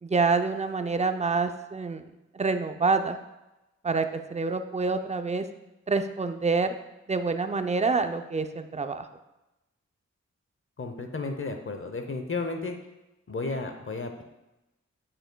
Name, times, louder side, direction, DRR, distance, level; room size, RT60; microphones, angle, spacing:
voice 1, 0.0-2.0 2.3-3.2 3.8-5.5 5.9-6.7 7.1-9.0, right 4 dB, 25° right, 8 dB, 0.5 m, -27 dB
voice 2, 10.8-12.7 13.3-14.2, left 3 dB, 45° left, 5 dB, 0.7 m, -33 dB
8.6 x 5.4 x 2.2 m, 0.97 s
cardioid pair, 45°, 30 cm